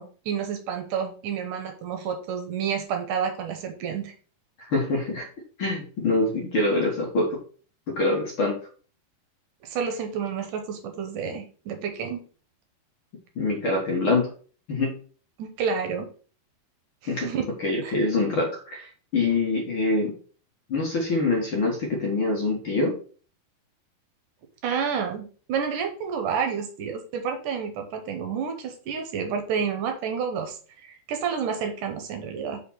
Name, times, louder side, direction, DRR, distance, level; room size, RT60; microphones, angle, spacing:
voice 1, 0.0-4.1 9.6-12.3 15.4-16.1 17.0-17.5 17.8-17.9 24.6-32.6, right 6 dB, 75° right, 5 dB, 2.2 m, -30 dB
voice 2, 4.6-5.3 5.6-7.4 7.9-8.6 13.4-14.3 14.7-15.0 17.1-17.3 17.6-20.1 20.7-22.9, left 2 dB, 50° left, -2 dB, 1.8 m, -25 dB
5.6 x 4.2 x 5.6 m, 0.41 s
omnidirectional pair, 4.2 m